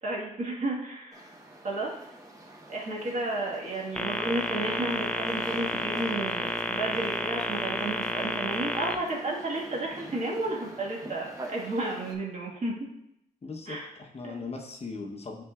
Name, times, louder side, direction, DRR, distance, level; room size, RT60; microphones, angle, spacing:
voice 1, 0.0-1.3 1.6-1.9 2.7-12.7 13.7-13.9 14.2-14.3, right 2 dB, 45° right, -2 dB, 1.5 m, -32 dB
sound 1, 1.1-12.1, right 1 dB, 20° right, 1.1 m, -46 dB
sound 2, 4.0-8.9, left 1 dB, 5° left, 0.5 m, -31 dB
voice 2, 13.4-15.4, left 3 dB, 40° left, 2 dB, 0.9 m, -39 dB
10.0 x 3.9 x 2.4 m, 0.82 s
cardioid pair, 95°, 16 cm